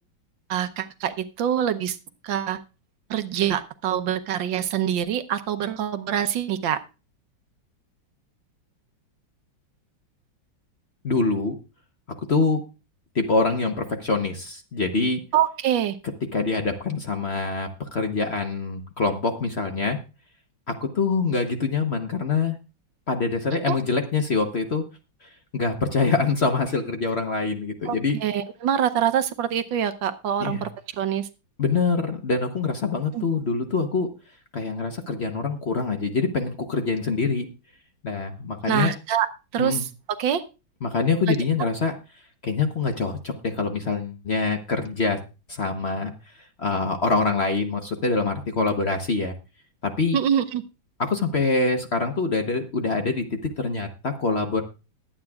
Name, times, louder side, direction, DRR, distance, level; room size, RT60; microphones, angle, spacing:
voice 1, 0.5-2.0 2.2-2.6 3.1-6.8 15.3-16.0 23.7-23.8 27.8-30.7 31.0-31.3 33.1-33.2 38.7-39.3 39.5-39.8 40.2-40.4 41.3-41.4 50.1-50.6, right 10 dB, 75° right, 10 dB, 1.5 m, -25 dB
voice 2, 11.0-11.6 12.3-12.6 13.1-15.2 16.3-20.0 20.7-22.6 23.1-24.9 25.2-28.2 30.4-30.7 31.6-34.1 34.5-37.5 38.0-38.9 39.6-39.8 40.8-42.0 42.4-45.2 45.5-46.1 46.6-49.3 49.8-50.2 51.0-54.6, left 4 dB, 40° left, 6 dB, 1.0 m, -25 dB
21.0 x 8.8 x 2.4 m, 0.30 s
omnidirectional pair, 2.1 m